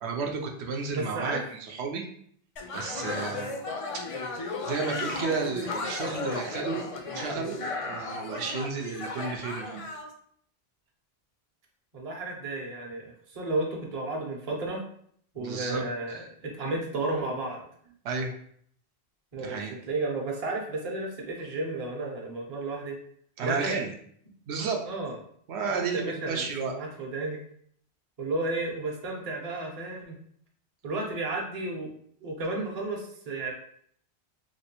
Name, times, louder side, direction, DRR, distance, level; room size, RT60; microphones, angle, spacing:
voice 1, 0.0-1.4 1.7-2.1 2.7-3.5 3.9-4.0 4.6-7.6 7.9-9.8 15.4-15.8 18.0-18.3 19.4-19.7 23.4-23.9 24.5-24.8 25.5-26.7, right 4 dB, 85° right, 2 dB, 0.9 m, -32 dB
voice 2, 0.9-1.4 3.3-3.5 11.9-14.8 15.3-17.6 19.3-19.6 19.9-23.0 23.4-23.8 24.9-25.1 25.7-27.4 28.2-30.2 30.8-31.9 32.2-33.5, right 2 dB, 40° right, 0 dB, 0.7 m, -33 dB
sound 1, 2.6-10.1, left 3 dB, 50° left, 0.4 m, -35 dB
3.1 x 2.9 x 2.9 m, 0.63 s
omnidirectional pair, 1.1 m